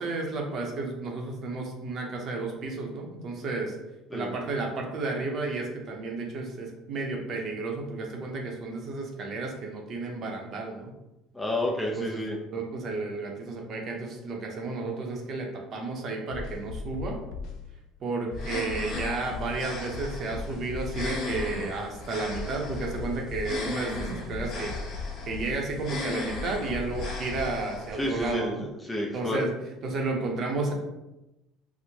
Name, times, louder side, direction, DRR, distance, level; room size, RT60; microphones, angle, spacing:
voice 1, 0.0-3.7 4.1-10.9 11.9-17.2 18.0-24.8 25.3-28.6 29.1-29.5 29.8-30.7, right 3 dB, 45° right, 1 dB, 0.7 m, -32 dB
voice 2, 11.3-12.4 28.0-29.4, left 1 dB, 5° left, -2 dB, 0.4 m, -30 dB
sound 1, 16.3-17.6 18.3-19.6 19.9-21.6 22.3-23.6 23.9-25.6 26.3-27.6, left 5 dB, 75° left, 0.4 m, -37 dB
sound 2, 18.3-28.3, left 2 dB, 45° left, 0.9 m, -37 dB
4.4 x 2.1 x 2.7 m, 0.97 s
cardioid pair, 130°, 0 cm